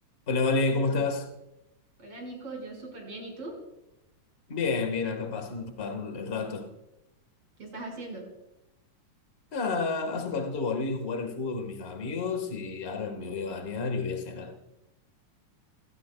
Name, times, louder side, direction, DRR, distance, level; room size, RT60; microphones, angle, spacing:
voice 1, 0.3-1.3 4.5-6.7 9.5-14.6, left 4 dB, 90° left, 0.5 m, -30 dB
voice 2, 2.0-3.6 7.6-8.3, right 2 dB, 45° right, 6.0 m, -40 dB
27.5 x 15.5 x 2.3 m
omnidirectional pair, 3.7 m